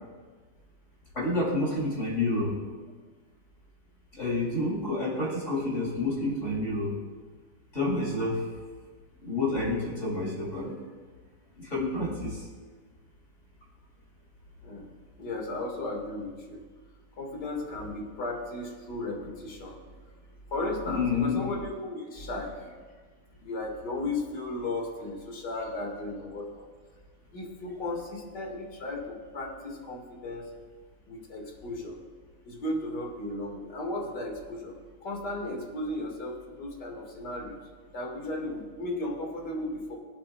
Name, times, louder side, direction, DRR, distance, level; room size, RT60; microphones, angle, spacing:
voice 1, 1.1-2.7 4.1-7.0 7.7-8.4 9.2-10.7 11.6-12.5 20.9-21.4, left 2 dB, 40° left, -5 dB, 3.6 m, -29 dB
voice 2, 15.2-16.6 17.2-19.8 20.5-22.8 23.4-26.7 27.3-30.5 31.1-32.0 32.5-37.6 37.9-40.0, left 2 dB, 65° left, 0 dB, 2.7 m, -35 dB
23.5 x 8.4 x 2.4 m, 1.5 s
omnidirectional pair, 2.0 m